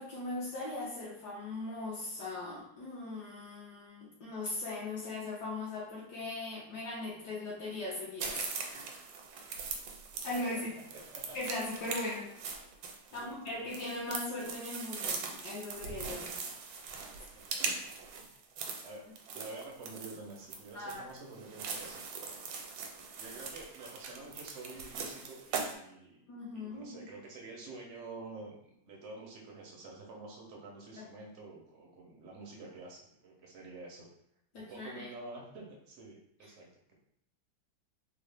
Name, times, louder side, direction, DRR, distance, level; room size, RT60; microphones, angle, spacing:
voice 1, 0.0-8.9 10.2-10.8 11.3-12.3 13.1-16.3 17.2-17.3 20.7-21.0 26.3-27.1 31.0-31.1 34.5-35.1, left 2 dB, 65° left, -6 dB, 1.3 m, -39 dB
sound 1, 8.2-25.7, right 5 dB, 85° right, 1.3 m, -41 dB
voice 2, 9.6-10.6 10.9-11.4 13.1-13.3 13.6-13.7 17.3-18.3 18.8-22.6 23.2-26.2 26.5-34.1 34.5-36.9, right 3 dB, 65° right, -1 dB, 0.7 m, -49 dB
3.6 x 2.0 x 3.3 m, 0.74 s
omnidirectional pair, 2.0 m